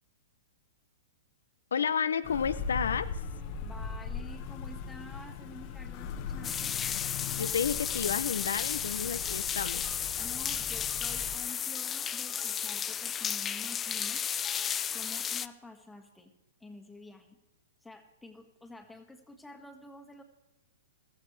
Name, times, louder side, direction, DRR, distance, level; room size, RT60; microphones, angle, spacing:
voice 1, 1.7-3.2 7.4-10.0, left 7 dB, 75° left, 12 dB, 0.6 m, -31 dB
sound 1, 2.2-11.4, left 5 dB, 40° left, 1.2 m, -40 dB
voice 2, 3.6-6.8 10.2-14.2 14.9-16.3 16.6-17.4 17.8-20.2, left 2 dB, 5° left, 5 dB, 1.7 m, -49 dB
sound 2, 6.4-15.5, left 8 dB, 20° left, 0.4 m, -33 dB
15.0 x 14.0 x 3.3 m, 1.1 s
hypercardioid pair, 115°, 0 cm